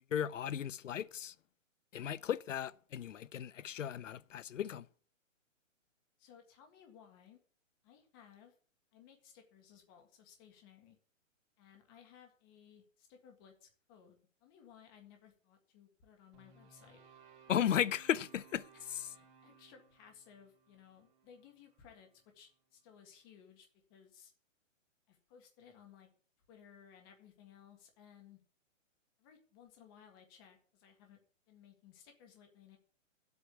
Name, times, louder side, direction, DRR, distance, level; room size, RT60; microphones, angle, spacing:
voice 1, 0.1-1.3 1.9-4.9 17.5-18.6, left 9 dB, 70° left, 0.8 m, -35 dB
voice 2, 6.2-7.4 7.8-8.5 8.9-11.0 11.6-17.0 18.7-18.9 19.1-22.1 22.3-24.3 25.1-26.1 26.5-28.4 29.2-31.2 31.5-32.8, left 8 dB, 20° left, 1.8 m, -60 dB
sound 1, 16.3-22.6, right 6 dB, 35° right, 3.1 m, -63 dB
9.7 x 8.4 x 8.3 m
hypercardioid pair, 175°, 39 cm